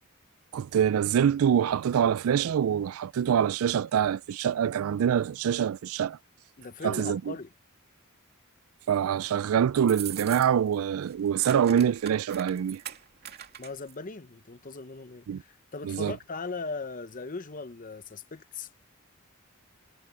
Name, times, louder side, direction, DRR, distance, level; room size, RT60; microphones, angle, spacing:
voice 1, 0.5-6.2 6.8-7.3 8.9-12.8 15.3-15.4 15.8-16.1, right 8 dB, 75° right, 0.3 m, -25 dB
voice 2, 6.6-7.5 13.6-18.8, left 4 dB, 40° left, 0.8 m, -39 dB
sound 1, 9.8-10.7 11.0-13.9, right 10 dB, 50° right, 2.5 m, -41 dB
head